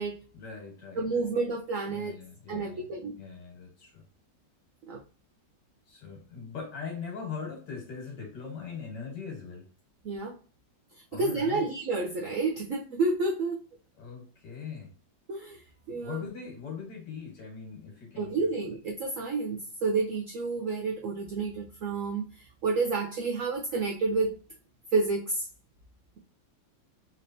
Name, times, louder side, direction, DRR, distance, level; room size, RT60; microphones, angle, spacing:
voice 1, 0.3-1.3 1.9-2.9 3.2-4.0 5.9-9.7 11.1-11.6 14.0-14.9 15.9-18.5, left 5 dB, 60° left, 1 dB, 2.0 m, -41 dB
voice 2, 0.9-2.2 2.5-3.2 4.9-5.0 10.0-10.4 11.1-13.6 15.3-16.3 18.2-24.4 24.9-25.5, right 3 dB, 80° right, 1 dB, 0.7 m, -30 dB
3.9 x 3.3 x 2.6 m, 0.38 s
omnidirectional pair, 2.1 m